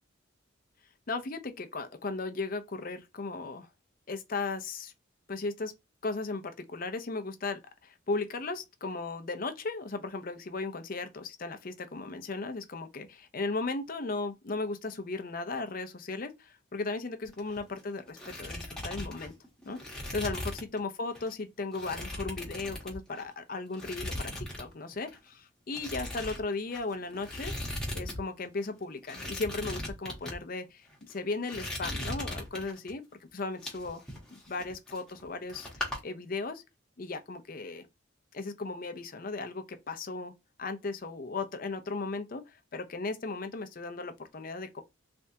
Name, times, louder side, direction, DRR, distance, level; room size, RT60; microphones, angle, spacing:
voice 1, 1.1-3.7 4.1-4.9 5.3-5.7 6.0-19.3 19.7-27.5 27.9-33.1 33.3-34.0 34.3-36.6 37.0-37.9 38.3-40.3 40.6-44.8, left 3 dB, 45° left, 0.6 m, -36 dB
sound 1, 17.2-17.8 18.1-20.8 21.1-21.3 21.7-23.3 23.7-24.7 24.9-25.2 25.7-28.2 28.4-28.5 29.0-30.4 30.9-31.1 31.5-32.9 33.4-35.2 35.5-36.0, left 1 dB, 5° left, 1.1 m, -38 dB
3.4 x 3.3 x 2.7 m
head